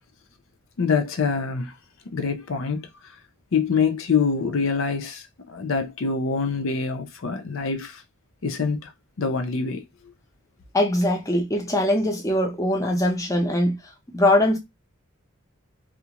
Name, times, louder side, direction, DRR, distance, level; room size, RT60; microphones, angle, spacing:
voice 1, 0.8-1.7 2.1-2.9 3.5-8.0 8.4-8.9 9.2-9.8, left 5 dB, 65° left, 0.5 m, -25 dB
voice 2, 10.7-13.8 14.1-14.6, left 1 dB, 15° left, 0.5 m, -21 dB
2.4 x 2.1 x 2.8 m
head